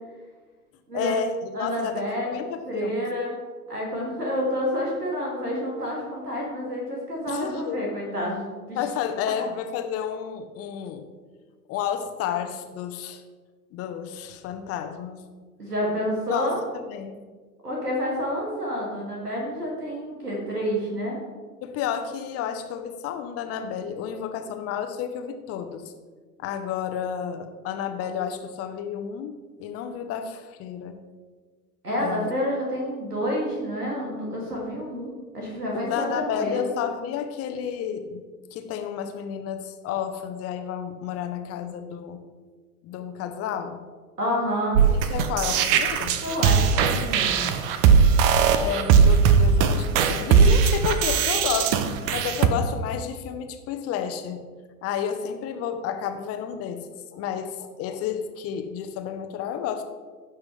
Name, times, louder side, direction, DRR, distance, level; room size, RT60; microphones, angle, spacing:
voice 1, 0.9-2.0 2.3-3.0 7.3-7.8 8.7-11.1 11.7-13.2 13.7-15.2 16.3-16.5 16.7-17.2 21.6-25.9 26.4-29.3 29.6-31.0 32.0-32.3 35.7-38.2 38.5-42.2 42.8-43.8 44.9-46.2 48.6-51.8 52.1-54.4 54.8-59.8, left 8 dB, 30° left, 7 dB, 1.0 m, -31 dB
voice 2, 1.5-3.4 3.7-8.8 15.6-16.6 17.6-21.2 31.8-36.6 44.2-44.9 46.2-47.4, equal, 85° right, -3 dB, 2.6 m, -29 dB
sound 1, 44.7-52.5, right 6 dB, 40° right, 0.8 m, -19 dB
15.5 x 6.1 x 3.3 m, 1.5 s
figure-of-eight pair, 90°, 45 cm